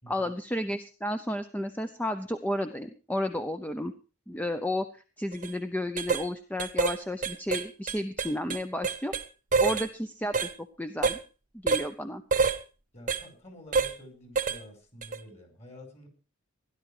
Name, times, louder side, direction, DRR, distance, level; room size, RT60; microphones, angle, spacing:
voice 1, 0.1-3.9 4.3-9.1 9.6-10.5 10.8-11.2 11.6-12.2, left 1 dB, 10° left, 8 dB, 0.7 m, -32 dB
sound 1, 5.3-5.5 6.0-6.2 6.6-7.0 7.2-9.2 9.5-9.9 10.3-10.5 11.0-11.2 11.7-11.9 12.3-12.6 13.1-13.2 13.7-13.9 14.4-14.6 15.0-15.2, right 4 dB, 40° right, 1.0 m, -26 dB
voice 2, 12.9-16.1, left 1 dB, 30° left, 6 dB, 5.1 m, -49 dB
16.5 x 11.5 x 4.9 m, 0.35 s
head